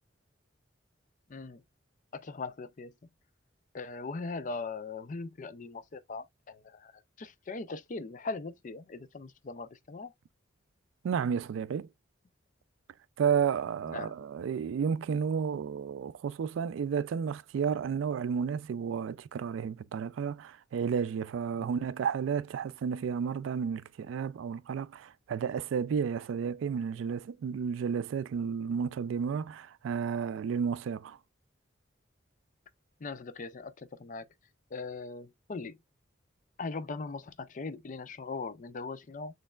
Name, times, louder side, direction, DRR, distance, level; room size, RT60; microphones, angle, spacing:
voice 1, 1.3-1.6 2.1-2.9 3.7-10.1 13.9-14.1 21.6-21.7 33.0-34.3 34.7-35.8 36.6-39.4, left 3 dB, 40° left, 0.4 m, -40 dB
voice 2, 11.0-11.9 13.2-31.2, right 7 dB, 75° right, 0.3 m, -32 dB
6.4 x 3.2 x 2.3 m
head